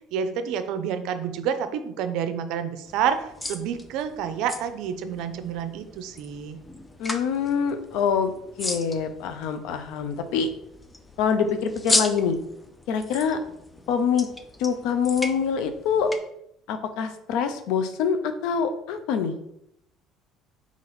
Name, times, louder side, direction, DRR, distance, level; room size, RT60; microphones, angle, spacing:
voice 1, 0.1-6.6, right 8 dB, 75° right, 9 dB, 0.5 m, -29 dB
sound 1, 2.9-16.2, left 2 dB, 15° left, 0.5 m, -35 dB
voice 2, 7.0-8.3 8.6-10.5 11.2-12.4 12.9-13.4 13.9-14.3 14.6-16.1 16.7-19.3, left 6 dB, 75° left, 9 dB, 0.5 m, -25 dB
4.0 x 2.9 x 4.2 m, 0.77 s
supercardioid pair, 95°, 0 cm